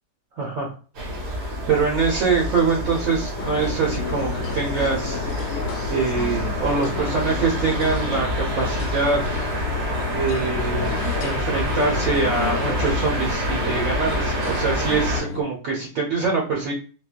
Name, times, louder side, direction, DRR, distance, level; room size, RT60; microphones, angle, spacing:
voice 1, 0.4-0.7 1.3-5.2 5.4-5.6 5.9-9.2 10.1-16.7, right 4 dB, 60° right, -1 dB, 1.2 m, -24 dB
sound 1, 0.9-15.2, equal, 90° right, 1.7 m, -27 dB
sound 2, 3.4-15.4, left 6 dB, 70° left, 0.8 m, -31 dB
4.5 x 2.2 x 2.4 m, 0.37 s
omnidirectional pair, 1.7 m